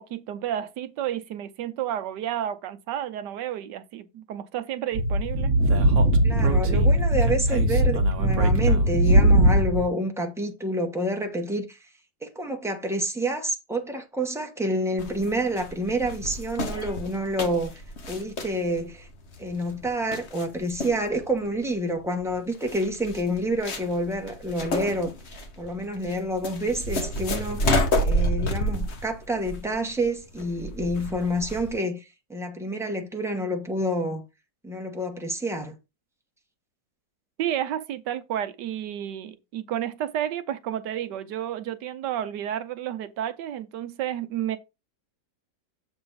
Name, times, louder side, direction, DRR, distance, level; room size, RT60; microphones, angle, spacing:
voice 1, 0.0-5.5 37.4-44.6, right 11 dB, 75° right, 1.3 m, -31 dB
Speech / Wind, 4.9-9.8, right 1 dB, 50° right, 1.2 m, -20 dB
voice 2, 6.2-11.8 12.2-19.1 19.4-25.1 25.6-32.0 32.3-34.2 34.6-35.7, right 1 dB, ahead, 0.8 m, -28 dB
sound 1, 15.0-31.8, equal, 40° left, 1.3 m, -30 dB
7.0 x 3.4 x 5.5 m
omnidirectional pair, 1.9 m